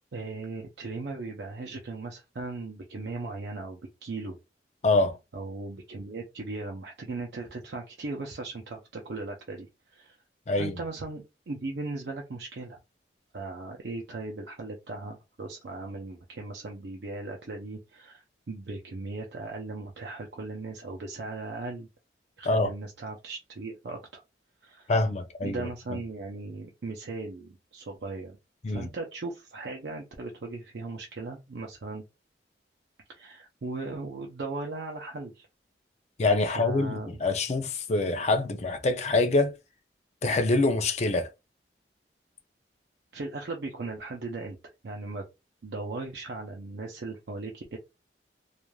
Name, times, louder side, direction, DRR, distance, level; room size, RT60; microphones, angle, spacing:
voice 1, 0.1-4.4 5.3-10.2 10.5-12.8 13.3-21.9 22.4-24.2 24.6-24.9 25.4-28.4 28.7-32.0 33.1-35.5 36.4-37.2 43.1-44.6 44.8-45.2 45.6-47.8, right 3 dB, 75° right, 0.5 m, -38 dB
voice 2, 4.8-5.2 10.5-10.8 22.5-22.7 24.9-26.0 28.6-28.9 36.2-39.5 40.2-41.3, left 2 dB, 40° left, 0.4 m, -25 dB
3.1 x 2.4 x 2.2 m
head